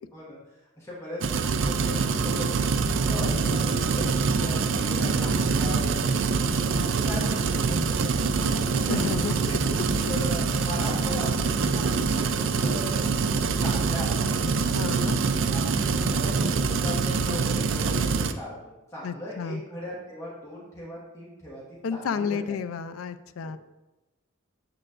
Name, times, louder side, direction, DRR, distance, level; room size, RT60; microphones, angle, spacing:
voice 1, 0.8-6.2 6.7-8.0 8.4-9.2 10.1-12.9 13.6-14.4 15.2-22.6 23.4-23.5, left 1 dB, 15° left, -7 dB, 1.5 m, -39 dB
sound 1, 1.2-18.3, right 4 dB, 65° right, 0.4 m, -25 dB
voice 2, 8.6-10.1 14.7-15.2 19.0-19.6 21.8-23.6, left 5 dB, 80° left, 12 dB, 0.4 m, -32 dB
7.5 x 6.7 x 2.5 m, 1.0 s
head